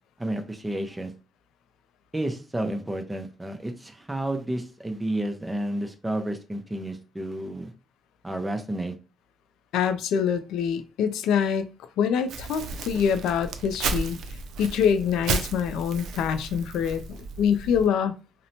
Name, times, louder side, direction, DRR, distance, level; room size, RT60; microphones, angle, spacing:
voice 1, 0.2-1.1 2.1-7.7 8.2-8.9, right 1 dB, 10° right, 0.5 m, -31 dB
voice 2, 9.7-11.7 12.0-14.2 14.6-18.1, left 7 dB, 85° left, 0.3 m, -25 dB
Crumpling crinkling, 12.3-17.9, right 4 dB, 80° right, 0.4 m, -33 dB
2.8 x 2.1 x 2.7 m
cardioid pair, 90°, 0 cm